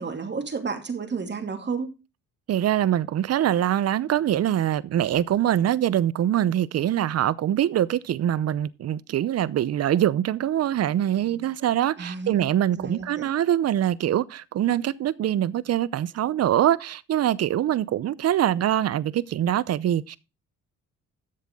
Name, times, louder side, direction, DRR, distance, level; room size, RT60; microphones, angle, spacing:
voice 1, 0.0-1.9 12.0-12.4 12.7-13.3, right 5 dB, 35° right, 2.5 m, -31 dB
voice 2, 2.5-20.2, right 11 dB, 55° right, 0.7 m, -24 dB
13.0 x 7.5 x 3.6 m
cardioid pair, 90°, 30 cm